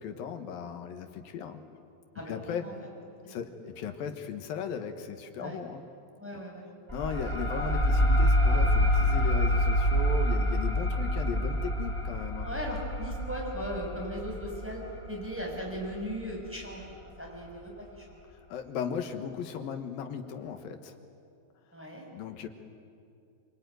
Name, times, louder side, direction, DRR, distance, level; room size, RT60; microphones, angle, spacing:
voice 1, 0.0-1.6 2.3-2.6 3.3-5.8 6.9-12.5 18.5-21.0 22.1-22.5, left 7 dB, 65° left, 7 dB, 2.8 m, -37 dB
voice 2, 2.1-2.9 3.2-3.4 5.4-5.6 6.2-6.7 12.4-14.8 15.1-16.9 17.2-18.2 21.7-22.0, equal, 5° right, -2 dB, 5.9 m, -38 dB
sound 1, 6.9-16.1, equal, 30° left, 0.5 m, -27 dB
26.0 x 25.0 x 9.3 m, 2.5 s
omnidirectional pair, 4.8 m